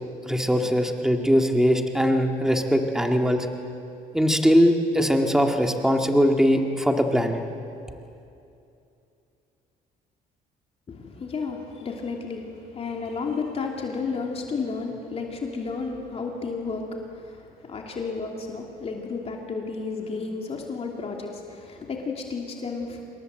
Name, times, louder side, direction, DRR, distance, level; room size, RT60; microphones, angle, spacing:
voice 1, 0.3-3.5 4.1-7.4, equal, 5° right, 3 dB, 2.1 m, -21 dB
voice 2, 10.9-23.0, left 4 dB, 35° left, 1 dB, 2.9 m, -32 dB
27.0 x 21.5 x 7.9 m, 2.7 s
cardioid pair, 110°, 17 cm